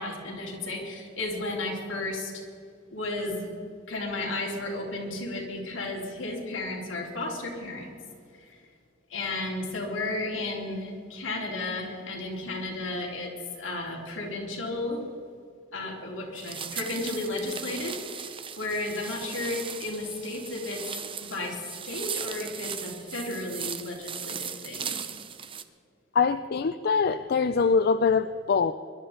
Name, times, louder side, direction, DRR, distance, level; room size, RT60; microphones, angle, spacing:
voice 1, 0.0-2.5 2.9-3.5 3.9-8.0 8.3-8.6 9.1-15.0 15.7-20.8 21.2-25.0, left 2 dB, 75° left, -2 dB, 3.6 m, -33 dB
sound 1, 16.4-25.6, right 7 dB, 25° right, 0.7 m, -38 dB
voice 2, 26.1-28.7, left 5 dB, 50° left, 11 dB, 0.4 m, -23 dB
22.0 x 12.0 x 4.4 m, 2.2 s
head